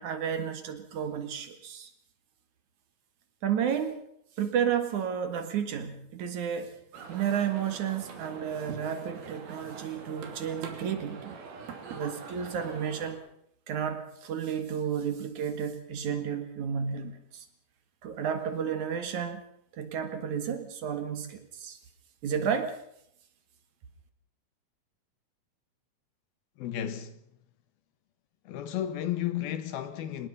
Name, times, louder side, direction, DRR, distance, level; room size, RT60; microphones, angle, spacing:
voice 1, 0.0-1.9 3.4-4.0 4.4-6.7 7.1-11.4 11.9-13.2 13.7-17.4 18.0-19.4 19.7-21.8 22.2-22.8, right 8 dB, 60° right, 3.0 m, -32 dB
sound 1, 6.9-13.1, right 5 dB, 80° right, 4.8 m, -44 dB
voice 2, 26.6-27.2 28.4-30.3, left 11 dB, 80° left, 3.3 m, -33 dB
25.0 x 20.0 x 5.5 m
omnidirectional pair, 4.3 m